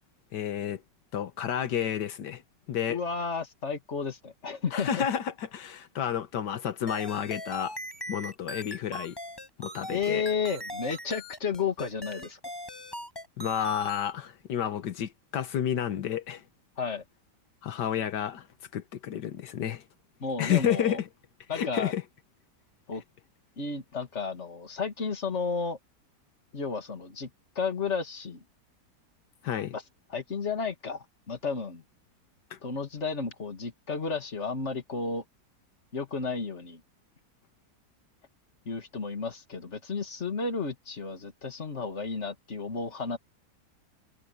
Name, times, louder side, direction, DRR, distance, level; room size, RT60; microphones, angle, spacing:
voice 1, 0.3-0.8 1.1-2.4 2.7-3.0 4.7-7.7 8.1-9.1 9.6-10.2 13.4-16.4 17.6-18.5 18.7-19.8 20.4-21.1 21.5-22.0 29.4-29.7 32.5-32.6, left 9 dB, 85° left, 1.7 m, -30 dB
voice 2, 2.9-5.1 9.9-12.4 16.8-17.0 20.2-21.0 21.5-21.9 22.9-23.0 23.6-25.8 26.5-27.3 27.6-28.4 29.7-29.8 30.1-31.8 32.6-35.2 35.9-36.8 38.7-43.2, left 5 dB, 40° left, 2.5 m, -32 dB
sound 1, 6.9-14.1, left 1 dB, 15° left, 6.4 m, -40 dB
omnidirectional pair, 1.8 m